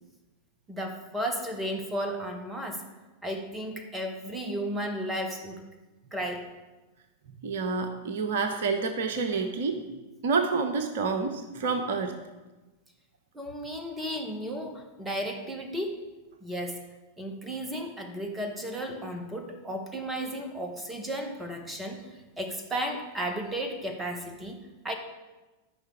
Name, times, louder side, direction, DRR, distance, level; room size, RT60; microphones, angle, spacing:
voice 1, 0.7-2.9 3.2-5.6 6.1-6.5 13.3-16.0 16.4-16.8 17.2-24.6 24.8-24.9, equal, 10° right, 4 dB, 1.5 m, -34 dB
voice 2, 7.3-9.8 10.2-12.1, right 4 dB, 55° right, 6 dB, 0.9 m, -28 dB
13.5 x 5.6 x 4.8 m, 1.1 s
figure-of-eight pair, 90°, 0 cm